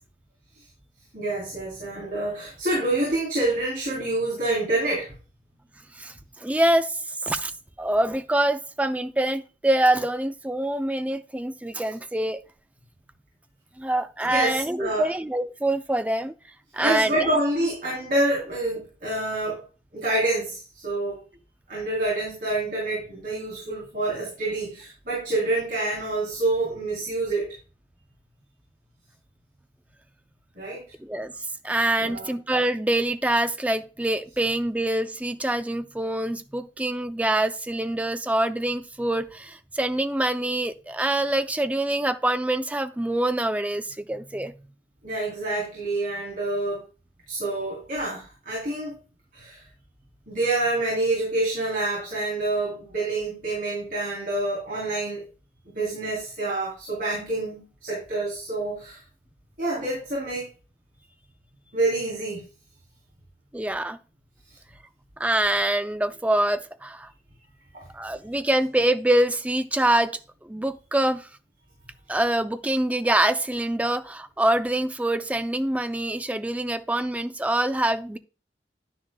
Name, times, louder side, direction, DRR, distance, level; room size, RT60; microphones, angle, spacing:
voice 1, 1.1-5.1 14.2-15.1 16.8-19.6 19.9-21.2 21.7-27.5 30.6-30.8 32.0-32.3 45.0-46.8 47.3-49.0 49.3-49.6 50.3-55.2 55.7-59.0 59.6-60.5 61.7-62.4 67.7-67.8, right 2 dB, 50° right, 3.4 m, -27 dB
voice 2, 6.0-6.9 7.2-7.5 7.8-12.4 13.8-16.3 16.7-17.7 31.0-31.3 31.6-44.5 63.5-64.0 65.2-67.1 67.9-70.2 70.4-71.3 72.1-78.2, right 1 dB, 10° right, 0.4 m, -25 dB
10.5 x 9.9 x 2.2 m
head